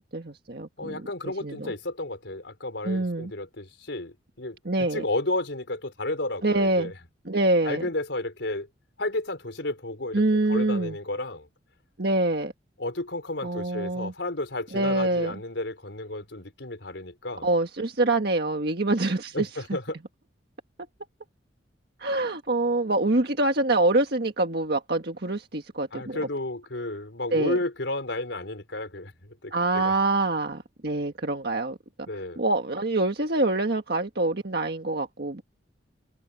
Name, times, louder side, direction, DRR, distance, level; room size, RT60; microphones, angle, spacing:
voice 1, 0.1-1.1 1.4-1.7 2.8-3.3 4.6-5.0 6.4-6.9 7.2-7.9 10.1-11.0 12.0-12.5 13.4-14.1 14.7-15.3 17.4-19.8 22.0-26.2 27.3-27.6 29.5-32.1 32.4-35.4, right 2 dB, 60° right, 1.6 m, -25 dB
voice 2, 0.8-6.9 7.6-8.7 9.0-10.2 10.5-11.5 12.8-17.5 19.3-20.0 25.9-29.9 32.1-32.4, left 2 dB, 75° left, 4.4 m, -32 dB
open air
head